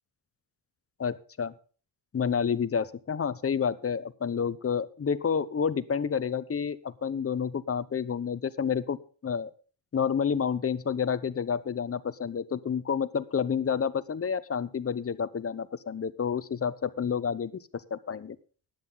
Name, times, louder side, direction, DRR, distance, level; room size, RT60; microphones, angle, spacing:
voice 1, 1.0-1.5 2.1-9.0 9.2-9.5 9.9-18.4, left 7 dB, 30° left, 16 dB, 0.9 m, -29 dB
15.0 x 10.5 x 4.0 m, 0.39 s
cardioid pair, 100°, 45 cm